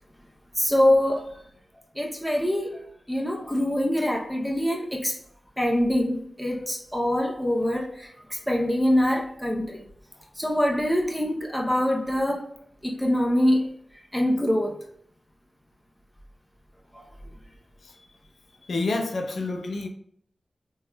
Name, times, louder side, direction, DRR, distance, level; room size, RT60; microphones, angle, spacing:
voice 1, 0.6-1.3 2.0-2.8 3.1-5.1 5.6-8.1 8.5-9.8 10.4-12.4 12.8-13.7 14.1-14.8, left 1 dB, ahead, -1 dB, 0.6 m, -24 dB
voice 2, 18.7-19.9, left 3 dB, 80° left, 4 dB, 0.5 m, -28 dB
3.5 x 3.0 x 2.2 m, 0.65 s
cardioid pair, 55°, 0 cm